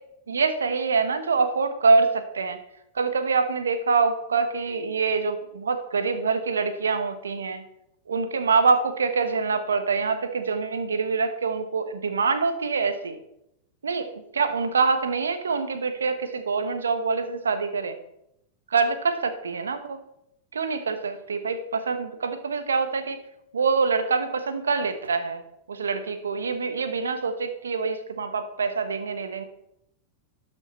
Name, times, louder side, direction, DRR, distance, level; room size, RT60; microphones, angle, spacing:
voice 1, 0.3-2.6 2.9-7.6 8.1-13.2 13.8-14.1 14.3-18.0 18.7-20.0 20.5-23.2 23.5-25.4 25.7-29.4, right 4 dB, 90° right, 9 dB, 1.1 m, -25 dB
12.5 x 5.8 x 4.3 m, 0.81 s
hypercardioid pair, 105°, 0 cm